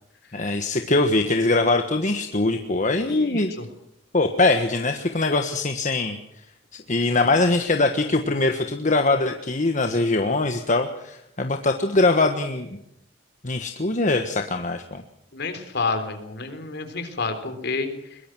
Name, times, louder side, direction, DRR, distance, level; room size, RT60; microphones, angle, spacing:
voice 1, 0.3-3.5 4.1-6.2 6.7-12.7 13.4-15.0, left 2 dB, 40° left, 5 dB, 1.4 m, -22 dB
voice 2, 3.1-3.7 15.3-18.2, left 4 dB, 60° left, 8 dB, 3.8 m, -29 dB
22.5 x 22.0 x 6.2 m, 0.79 s
head